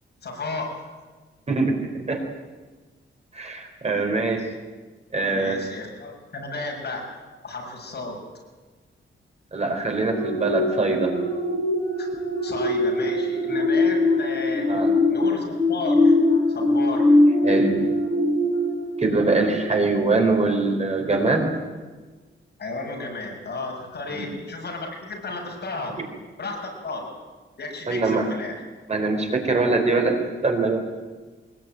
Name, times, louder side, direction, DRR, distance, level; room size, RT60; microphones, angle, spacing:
voice 1, 0.2-0.9 5.3-8.2 12.0-12.1 12.4-14.7 15.1-16.2 16.5-17.2 22.6-26.0 26.4-27.2 27.6-28.6, left 3 dB, 55° left, 0 dB, 6.7 m, -33 dB
voice 2, 3.3-4.4 5.1-5.6 9.5-11.1 14.7-14.9 17.4-17.8 19.0-21.5 24.1-24.3 27.9-28.2 28.9-30.2 30.4-30.8, right 3 dB, 30° right, 3 dB, 4.1 m, -22 dB
sound 1, 10.1-20.0 20.4-20.6, left 2 dB, 20° left, 7.8 m, -22 dB
23.0 x 21.0 x 9.3 m, 1.3 s
wide cardioid pair, 180°, 21 cm